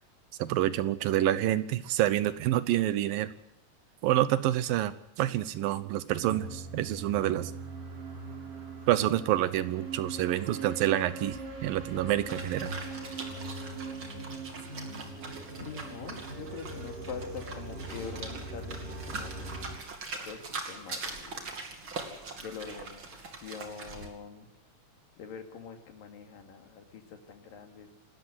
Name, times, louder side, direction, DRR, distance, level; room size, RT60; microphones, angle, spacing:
voice 1, 0.4-3.3 4.0-7.5 8.9-12.8, right 13 dB, 85° right, 14 dB, 2.8 m, -28 dB
sound 1, 6.2-19.7, right 3 dB, 65° right, 6.2 m, -41 dB
sound 2, 12.3-24.1, right 3 dB, 40° right, 3.1 m, -42 dB
voice 2, 15.5-19.8 20.2-20.4 20.7-21.6 22.4-24.5 25.2-28.0, left 6 dB, 80° left, 5 dB, 4.0 m, -44 dB
27.5 x 13.5 x 8.0 m, 0.78 s
omnidirectional pair, 4.0 m